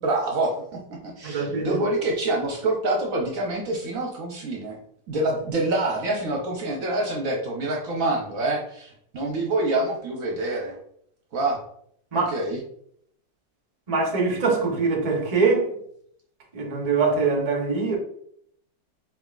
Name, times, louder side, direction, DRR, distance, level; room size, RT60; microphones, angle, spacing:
voice 1, 0.0-0.5 1.0-4.8 5.1-10.8 11.3-11.6 12.3-12.6, right 2 dB, 60° right, 0 dB, 1.0 m, -26 dB
voice 2, 1.2-1.8 12.1-12.3 13.9-15.7 16.5-18.0, right 4 dB, 45° right, -1 dB, 0.5 m, -23 dB
4.2 x 3.5 x 2.3 m, 0.68 s
omnidirectional pair, 1.9 m